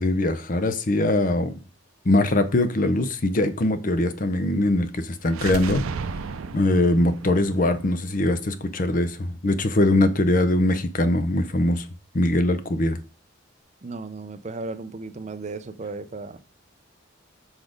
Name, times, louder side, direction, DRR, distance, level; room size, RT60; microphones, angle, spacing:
voice 1, 0.0-1.6 2.1-5.8 6.5-11.9 12.1-13.0, left 1 dB, 40° left, 0.6 m, -22 dB
sound 1, 5.3-9.1, right 5 dB, 90° right, 0.5 m, -35 dB
voice 2, 13.8-16.4, right 3 dB, 35° right, 0.5 m, -35 dB
6.1 x 4.1 x 5.0 m
head